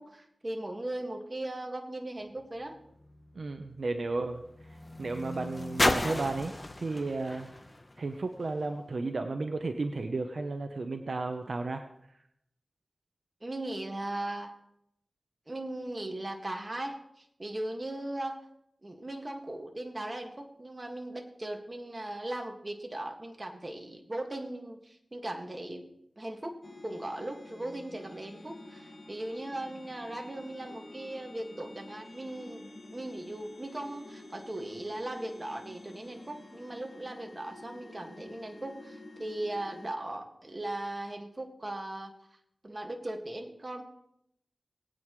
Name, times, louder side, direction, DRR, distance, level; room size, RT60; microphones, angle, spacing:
voice 1, 0.0-2.8 13.4-14.5 15.5-18.4 18.8-25.9 26.2-32.6 32.9-42.1 42.6-43.8, right 1 dB, 30° right, 3 dB, 2.0 m, -38 dB
sound 1, 2.3-8.8 9.6-9.7, left 1 dB, 30° left, 1.1 m, -35 dB
voice 2, 3.3-4.4 5.0-7.5 8.0-11.8, right 3 dB, 70° right, 6 dB, 0.9 m, -33 dB
sound 2, 26.6-39.9, left 2 dB, 50° left, 2.0 m, -49 dB
21.0 x 9.1 x 3.2 m, 0.76 s
wide cardioid pair, 60°, 0 cm